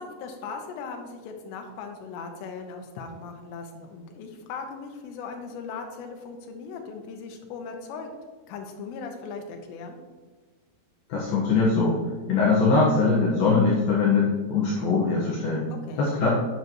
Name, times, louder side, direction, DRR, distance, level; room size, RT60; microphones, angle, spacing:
voice 1, 0.0-8.1 8.5-10.0 15.9-16.1, left 5 dB, 80° left, 4 dB, 3.0 m, -38 dB
voice 2, 11.1-12.0 12.3-15.7 16.0-16.3, left 4 dB, 65° left, -6 dB, 2.8 m, -22 dB
9.6 x 7.9 x 3.0 m, 1.3 s
omnidirectional pair, 5.2 m